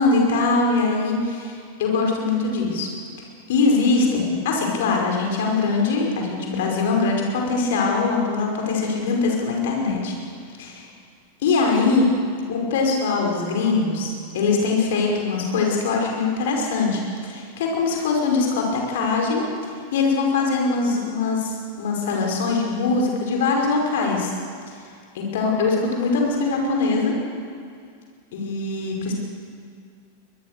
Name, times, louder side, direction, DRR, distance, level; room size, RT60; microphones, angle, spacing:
voice 1, 0.0-2.9 3.5-10.1 10.6-10.9 11.4-12.1 12.5-19.4 19.9-24.3 25.1-27.1 28.3-29.1, left 4 dB, 55° left, 0 dB, 5.4 m, -22 dB
23.5 x 21.0 x 6.8 m, 2.2 s
figure-of-eight pair, 90°, 0 cm